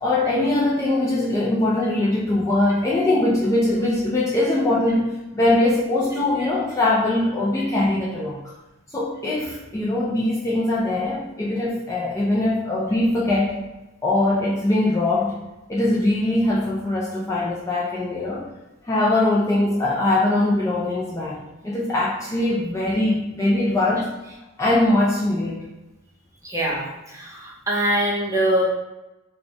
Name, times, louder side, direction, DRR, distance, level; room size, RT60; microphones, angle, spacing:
voice 1, 0.0-5.1 5.3-8.4 8.9-13.6 14.0-15.4 15.7-18.5 18.8-24.1 24.6-25.6, left 2 dB, 15° left, -6 dB, 0.3 m, -21 dB
voice 2, 26.4-28.6, right 1 dB, 15° right, -4 dB, 0.7 m, -23 dB
4.4 x 2.2 x 2.8 m, 1.0 s
head